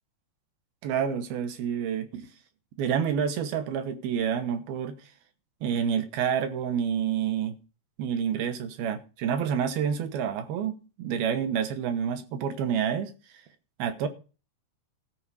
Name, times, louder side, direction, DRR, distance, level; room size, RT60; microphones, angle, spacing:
voice 1, 0.8-2.3 2.8-5.0 5.6-7.6 8.0-13.1 13.8-14.1, right 8 dB, 75° right, 2.8 m, -28 dB
13.5 x 4.7 x 8.2 m
omnidirectional pair, 4.6 m